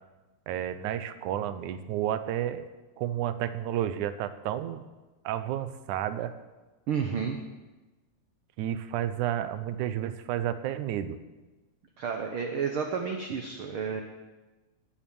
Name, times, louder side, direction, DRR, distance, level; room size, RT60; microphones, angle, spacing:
voice 1, 0.5-2.7 3.0-4.8 5.3-6.4 8.6-11.2, right 11 dB, 80° right, 12 dB, 2.2 m, -31 dB
voice 2, 6.9-7.4 12.0-14.0, right 6 dB, 60° right, 4 dB, 1.5 m, -31 dB
15.0 x 10.5 x 7.0 m, 1.2 s
omnidirectional pair, 3.5 m